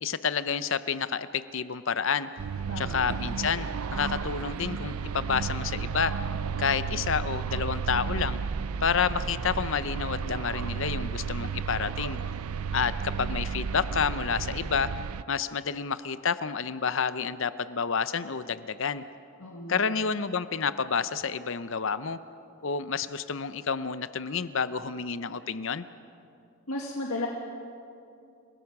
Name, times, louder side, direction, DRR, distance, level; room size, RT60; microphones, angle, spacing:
voice 1, 0.0-2.3 2.8-6.3 6.6-8.4 8.8-12.2 12.7-14.9 15.3-19.0 19.7-22.2 22.6-25.8, left 6 dB, 60° left, 13 dB, 0.7 m, -29 dB
sound 1, 2.4-15.2, right 6 dB, 80° right, 0.5 m, -33 dB
voice 2, 2.7-3.0 19.4-19.8 26.7-27.3, left 2 dB, 80° left, -1 dB, 2.0 m, -34 dB
29.5 x 17.5 x 6.0 m, 2.5 s
head